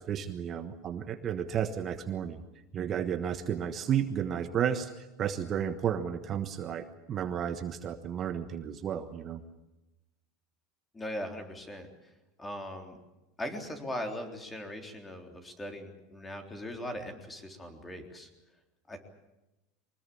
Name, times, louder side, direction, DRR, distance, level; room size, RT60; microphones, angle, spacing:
voice 1, 0.0-2.4 2.7-9.4, right 9 dB, 30° right, 8 dB, 1.3 m, -32 dB
voice 2, 10.9-11.9 12.4-13.0 13.4-18.3 18.9-19.0, left 1 dB, 10° left, 5 dB, 3.7 m, -39 dB
24.0 x 20.0 x 8.6 m, 0.98 s
supercardioid pair, 140°, 0 cm